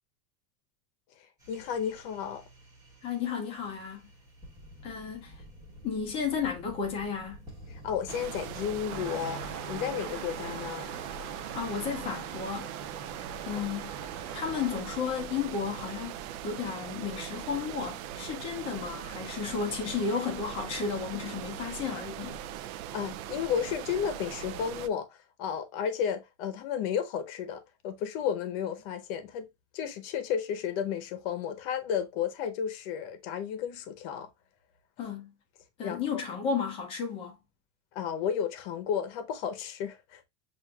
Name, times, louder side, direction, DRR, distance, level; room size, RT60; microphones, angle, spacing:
sound 1, 1.4-9.8, equal, 5° right, 0.9 m, -51 dB
voice 1, 1.5-2.4 7.7-9.4 9.7-10.9 22.9-25.1 25.4-29.5 29.7-34.3 35.8-36.0 37.9-40.2, left 8 dB, 40° left, 0.7 m, -32 dB
voice 2, 3.0-4.1 4.8-5.4 5.8-7.4 11.5-12.7 13.5-13.9 14.3-22.7 35.0-35.3 35.8-37.4, left 6 dB, 15° left, 0.4 m, -33 dB
sound 2, 8.1-24.9, right 10 dB, 70° right, 0.5 m, -40 dB
sound 3, 8.9-14.8, right 5 dB, 55° right, 1.4 m, -43 dB
7.4 x 2.5 x 2.3 m
supercardioid pair, 175°, 44 cm